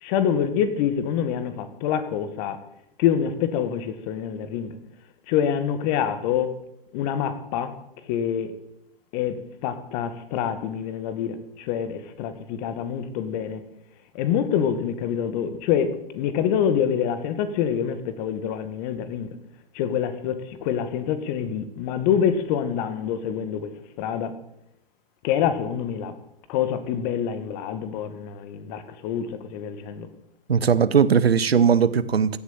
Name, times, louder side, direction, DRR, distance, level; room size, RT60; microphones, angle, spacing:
voice 1, 0.0-2.6 3.0-4.8 5.3-6.5 6.9-7.7 8.0-8.5 9.1-13.6 14.1-19.3 19.7-23.7 24.0-24.3 25.2-26.1 26.5-30.1, left 8 dB, 45° left, 11 dB, 2.0 m, -26 dB
voice 2, 30.5-32.4, right 7 dB, 90° right, 16 dB, 0.8 m, -19 dB
15.5 x 8.3 x 7.4 m, 0.83 s
hypercardioid pair, 105°, 30 cm